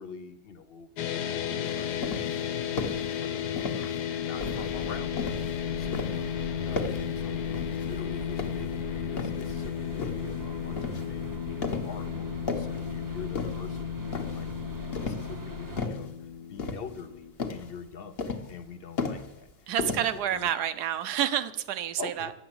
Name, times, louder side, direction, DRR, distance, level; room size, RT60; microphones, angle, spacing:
voice 1, 0.0-3.9 4.2-19.5 20.3-20.5 22.0-22.3, left 5 dB, 60° left, 11 dB, 0.6 m, -45 dB
sound 1, 1.0-17.3, left 8 dB, 90° left, 1.4 m, -34 dB
sound 2, 1.6-2.4 2.8-3.1 3.6-4.0 4.4-5.6 5.9-6.3 6.7-7.1 7.5-7.9 8.3-9.5 10.0-10.3 10.8-11.1 11.6-12.0 12.3-12.9 13.3-13.8 14.1-14.5 14.9-15.4 15.8-16.1 16.6-17.1 17.4-17.7 18.2-18.7 19.0-19.5 19.8-20.4, left 4 dB, 45° left, 1.2 m, -34 dB
sound 3, 4.4-15.9, right 1 dB, 20° right, 0.6 m, -42 dB
voice 2, 19.7-22.3, right 10 dB, 80° right, 12 dB, 1.2 m, -29 dB
9.8 x 8.0 x 7.7 m, 0.87 s
omnidirectional pair, 1.7 m